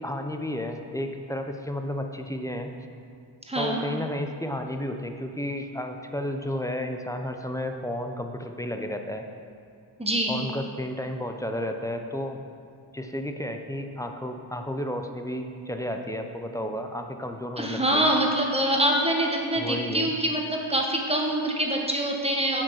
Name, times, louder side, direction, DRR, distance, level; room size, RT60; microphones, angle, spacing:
voice 1, 0.0-2.7 3.6-9.2 10.3-12.4 12.9-18.1 19.6-20.1, left 1 dB, 5° left, 5 dB, 0.7 m, -32 dB
voice 2, 3.5-3.8 10.0-10.4 17.6-22.6, right 1 dB, 15° right, 0 dB, 1.3 m, -25 dB
7.3 x 5.1 x 6.3 m, 2.3 s
cardioid pair, 55°, 47 cm